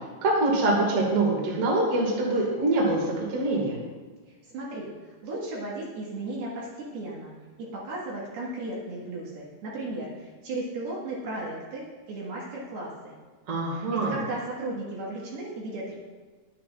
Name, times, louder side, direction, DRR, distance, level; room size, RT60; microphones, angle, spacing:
voice 1, 0.2-3.0 3.3-3.8 13.5-14.2, right 2 dB, 40° right, -3 dB, 2.6 m, -24 dB
voice 2, 4.5-7.3 7.6-13.1 13.8-15.9, right 2 dB, 70° right, -5 dB, 3.5 m, -35 dB
12.0 x 9.5 x 2.5 m, 1.4 s
omnidirectional pair, 4.9 m